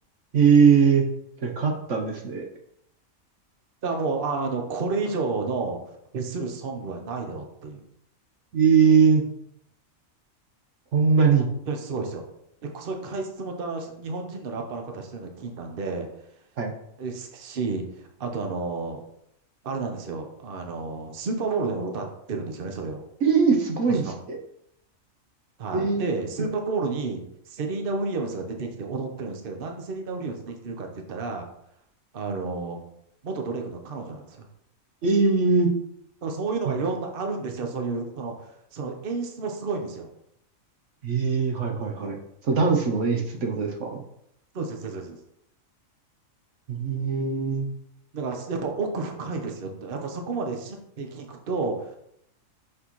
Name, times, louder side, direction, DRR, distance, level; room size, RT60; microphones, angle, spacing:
voice 1, 0.3-1.0 1.4-2.5 8.5-9.2 10.9-11.5 16.6-16.7 23.2-24.4 25.7-26.2 35.0-35.7 36.6-36.8 41.0-42.2 42.4-44.0 46.7-47.7, right 5 dB, 65° right, 2 dB, 1.2 m, -21 dB
voice 2, 3.8-5.8 6.1-7.8 11.4-12.2 12.7-16.1 17.0-19.0 19.6-23.0 23.9-24.2 25.6-31.5 32.1-32.8 33.2-34.5 36.2-40.1 44.5-45.2 48.1-52.0, right 4 dB, 45° right, 3 dB, 1.0 m, -31 dB
6.2 x 5.7 x 3.1 m, 0.74 s
omnidirectional pair, 1.4 m